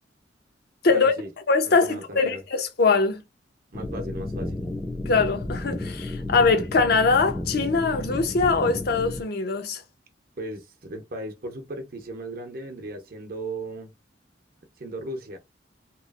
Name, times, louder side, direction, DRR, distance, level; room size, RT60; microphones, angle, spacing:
voice 1, 0.9-1.3 1.6-2.4 3.7-4.7 10.4-14.0 14.8-15.4, right 1 dB, 50° right, 0.7 m, -36 dB
voice 2, 1.5-3.2 5.1-9.8, left 4 dB, 55° left, 0.6 m, -22 dB
sound 1, 3.7-9.2, left 2 dB, 10° left, 0.5 m, -32 dB
2.9 x 2.4 x 2.4 m
head